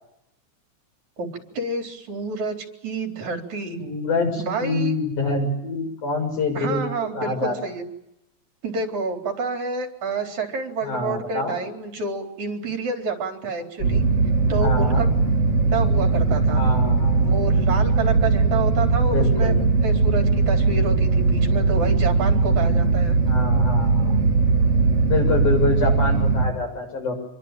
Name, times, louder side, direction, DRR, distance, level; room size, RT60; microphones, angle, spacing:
voice 1, 1.6-2.6 2.8-3.8 4.4-4.9 6.6-7.9 8.6-14.1 14.5-15.1 15.7-16.6 17.1-19.5 19.8-23.2, right 3 dB, 65° right, 4 dB, 5.2 m, -28 dB
voice 2, 3.8-7.5 10.8-11.6 14.6-15.0 16.5-17.4 19.0-19.6 23.3-24.2 25.0-27.1, left 3 dB, 80° left, 3 dB, 8.5 m, -26 dB
sound 1, 13.8-26.5, right 4 dB, 50° right, 4.5 m, -19 dB
27.5 x 22.5 x 9.1 m, 0.86 s
omnidirectional pair, 3.5 m